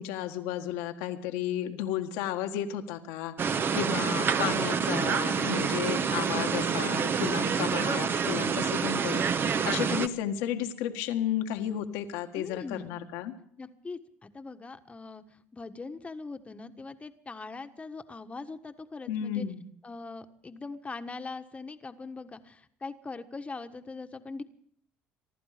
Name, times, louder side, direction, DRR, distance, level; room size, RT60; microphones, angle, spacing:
voice 1, 0.0-13.3 19.1-19.6, left 11 dB, 80° left, 7 dB, 1.6 m, -33 dB
sound 1, 3.4-10.1, right 6 dB, 40° right, 0.9 m, -27 dB
voice 2, 12.3-13.0 13.6-19.4 19.8-24.4, left 3 dB, 25° left, 9 dB, 1.4 m, -41 dB
24.0 x 11.5 x 5.1 m, 0.65 s
supercardioid pair, 75°, 6 cm